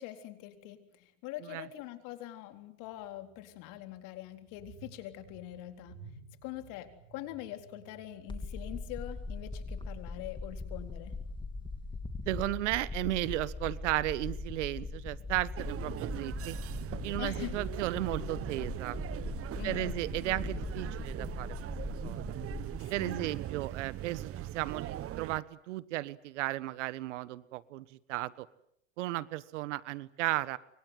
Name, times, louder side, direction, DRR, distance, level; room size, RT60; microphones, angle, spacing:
voice 1, 0.0-6.0 6.4-11.2 17.2-17.6 19.6-20.0 20.3-20.4 23.0-23.3, left 14 dB, 60° left, 7 dB, 4.0 m, -44 dB
sound 1, 2.8-10.3, right 5 dB, 60° right, 7.6 m, -57 dB
sound 2, 8.3-22.8, left 3 dB, 15° left, 3.5 m, -40 dB
voice 2, 12.3-16.6 17.0-19.0 19.6-21.7 22.0-22.2 22.9-28.5 29.0-30.6, right 17 dB, 75° right, 18 dB, 1.4 m, -35 dB
sound 3, 15.6-25.4, right 13 dB, 40° right, 1.3 m, -40 dB
29.0 x 25.0 x 7.9 m, 0.70 s
hypercardioid pair, 100°, 36 cm